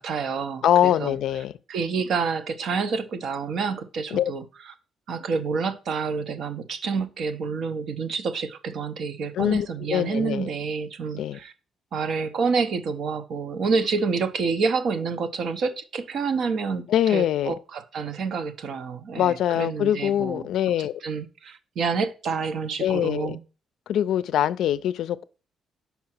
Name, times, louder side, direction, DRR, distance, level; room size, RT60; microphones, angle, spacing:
voice 1, 0.0-1.2 1.7-4.4 5.1-11.5 11.9-20.5 20.8-23.4, right 5 dB, 65° right, 0.7 m, -28 dB
voice 2, 0.6-1.5 4.1-4.3 9.3-10.5 11.1-11.4 16.9-17.5 19.2-21.0 22.8-23.4 23.9-25.2, left 11 dB, 75° left, 0.4 m, -23 dB
5.7 x 4.8 x 4.4 m
cardioid pair, 90°, 0 cm